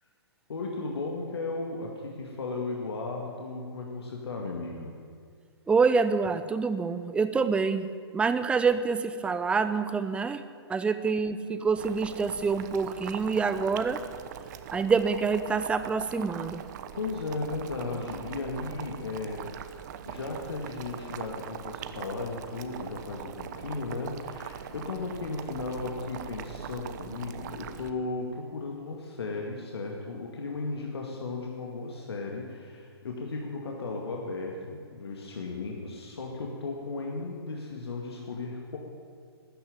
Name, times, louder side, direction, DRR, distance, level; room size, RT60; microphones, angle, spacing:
voice 1, 0.5-5.0 10.7-10.9 16.9-38.8, left 3 dB, 70° left, 0 dB, 2.1 m, -35 dB
voice 2, 5.7-7.9 8.1-10.4 10.7-14.0 14.7-16.6, right 5 dB, 10° right, 11 dB, 0.6 m, -26 dB
Boiling, 11.8-27.9, right 10 dB, 40° right, 0.9 m, -41 dB
13.0 x 9.5 x 9.6 m, 2.1 s
hypercardioid pair, 130°, 14 cm